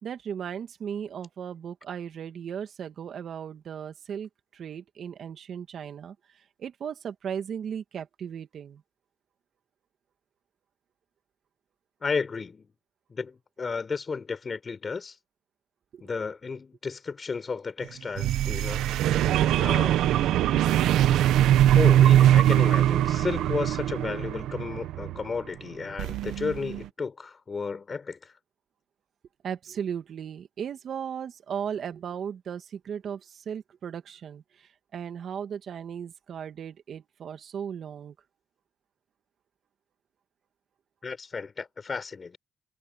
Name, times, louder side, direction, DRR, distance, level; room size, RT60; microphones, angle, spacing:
voice 1, 0.0-8.8 15.9-16.0 29.4-38.1, right 8 dB, 60° right, 2.2 m, -36 dB
voice 2, 12.0-12.7 13.1-15.2 16.0-18.9 19.6-20.0 21.7-28.3 41.0-42.4, left 5 dB, 35° left, 4.4 m, -33 dB
sound 1, 18.2-25.2 26.0-26.9, right 12 dB, 85° right, 1.2 m, -22 dB
cardioid pair, 90°, 0 cm